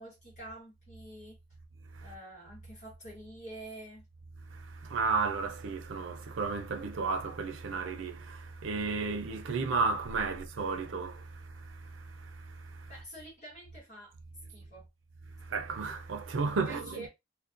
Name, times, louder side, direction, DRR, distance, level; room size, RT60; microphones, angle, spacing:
voice 1, 0.0-1.4 2.0-4.1 12.9-14.2 14.5-14.9 16.6-17.1, right 1 dB, 40° left, 1.0 m, -47 dB
voice 2, 4.5-12.9 15.4-17.1, right 4 dB, 90° right, 0.5 m, -34 dB
2.4 x 2.1 x 2.4 m
head